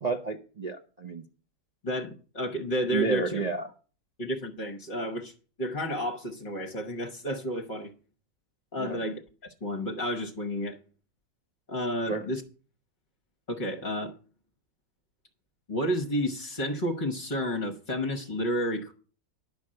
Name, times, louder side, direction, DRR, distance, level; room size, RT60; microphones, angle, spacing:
voice 1, 0.0-1.3 2.9-3.7 8.8-9.0 12.1-12.3, right 4 dB, 65° right, 0.4 m, -31 dB
voice 2, 1.8-3.4 4.2-5.3 5.6-7.9 8.7-10.8 11.7-12.4 13.5-14.1 15.7-18.9, equal, 35° left, 1.1 m, -31 dB
11.0 x 5.5 x 7.6 m
omnidirectional pair, 1.9 m